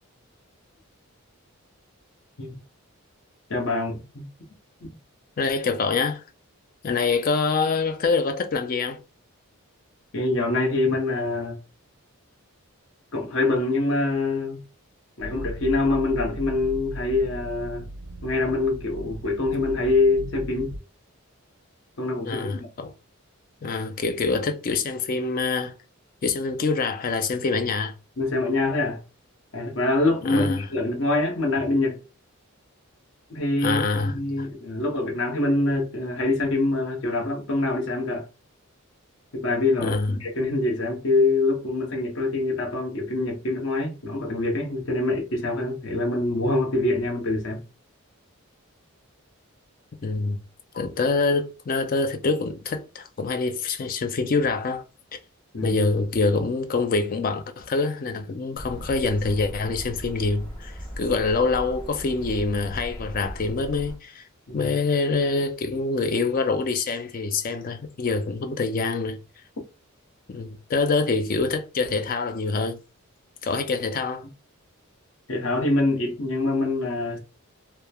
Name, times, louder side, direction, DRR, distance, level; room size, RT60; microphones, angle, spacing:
voice 1, 3.5-4.3 4.8-4.9 10.1-11.6 13.1-14.6 15.2-17.9 18.2-20.7 22.0-22.7 28.2-29.0 29.5-32.0 33.3-38.3 39.3-47.6 55.5-55.8 64.5-64.7 75.3-77.2, left 2 dB, 60° left, 0.8 m, -25 dB
voice 2, 5.4-6.2 6.8-9.0 22.2-22.9 23.6-25.7 26.2-27.9 30.2-30.7 33.6-34.5 39.8-40.1 50.0-50.4 50.7-54.8 55.1-55.2 55.6-64.3 64.5-69.2 70.3-72.8 73.4-74.2, left 4 dB, 40° left, 0.3 m, -25 dB
sound 1, 15.2-20.8, right 1 dB, 65° right, 0.3 m, -37 dB
sound 2, 58.5-64.0, equal, 5° left, 1.0 m, -37 dB
3.0 x 2.0 x 2.2 m
head